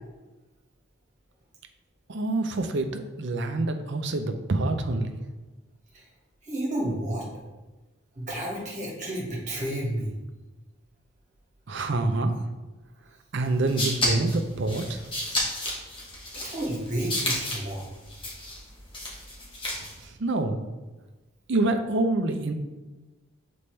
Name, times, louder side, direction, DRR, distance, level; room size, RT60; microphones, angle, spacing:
voice 1, 2.1-5.2 11.7-12.3 13.3-15.0 20.0-20.7 21.5-22.5, right 2 dB, 55° right, 6 dB, 0.6 m, -26 dB
voice 2, 6.4-7.3 8.1-10.1 16.4-17.9, right 1 dB, 35° right, -3 dB, 1.7 m, -31 dB
sound 1, 13.4-20.0, left 1 dB, 25° left, 1.3 m, -32 dB
6.9 x 4.3 x 3.3 m, 1.2 s
head